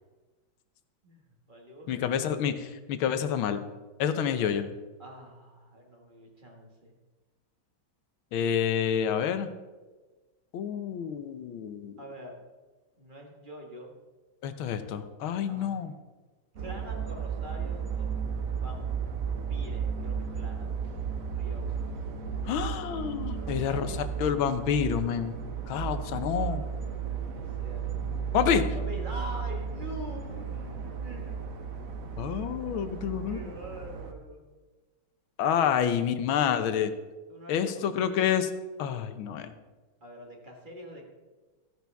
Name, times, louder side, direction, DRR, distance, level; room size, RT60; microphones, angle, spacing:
voice 1, 1.0-2.3 4.1-4.5 5.0-6.9 12.0-12.4 13.0-13.9 15.5-15.9 16.6-18.1 18.5-18.8 19.5-21.0 21.3-21.8 22.3-22.7 23.3-24.1 25.7-27.9 28.7-31.5 33.3-34.5 35.5-36.3 37.3-38.3 40.0-41.0, equal, 25° right, 0 dB, 1.8 m, -45 dB
voice 2, 1.9-3.6 4.0-4.7 8.3-9.5 10.5-11.9 14.4-15.9 22.4-23.9 24.2-25.4 25.7-26.6 28.3-28.6 32.2-33.5 35.4-36.9 37.5-38.5 38.8-39.5, left 8 dB, 80° left, 10 dB, 1.6 m, -28 dB
sound 1, 16.6-34.1, right 6 dB, 50° right, 1.2 m, -34 dB
14.5 x 10.5 x 3.5 m, 1.3 s
omnidirectional pair, 2.2 m